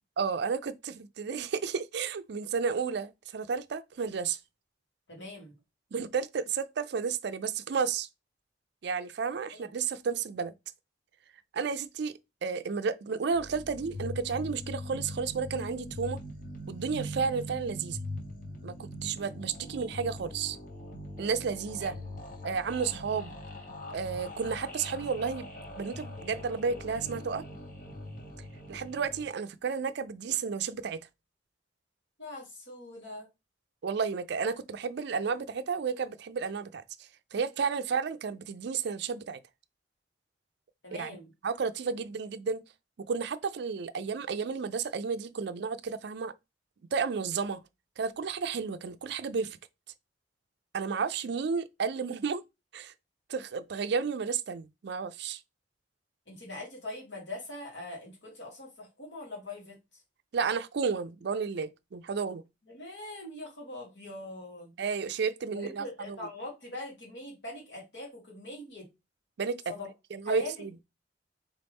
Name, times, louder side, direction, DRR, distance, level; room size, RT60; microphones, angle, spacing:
voice 1, 0.2-4.4 5.9-8.1 8.8-10.5 11.5-16.2 16.7-18.0 18.6-20.6 21.2-21.9 22.4-23.3 23.9-25.5 25.8-27.4 28.7-31.1 33.8-36.8 37.3-39.4 41.0-41.1 41.4-42.6 43.0-46.3 46.9-47.6 48.0-49.6 50.7-52.4 52.7-52.9 53.3-55.4 60.3-62.4 64.8-66.2 69.4-69.6 70.1-70.7, right 5 dB, 65° right, 0.4 m, -32 dB
voice 2, 5.1-5.5 9.5-9.7 21.8-22.1 23.8-23.9 32.2-33.3 40.8-41.3 56.3-59.8 62.7-64.7 65.5-68.9 69.7-69.9 70.2-70.6, left 2 dB, 70° left, 2.4 m, -42 dB
sound 1, 13.3-29.3, left 1 dB, 45° left, 1.3 m, -42 dB
4.0 x 3.7 x 3.5 m
head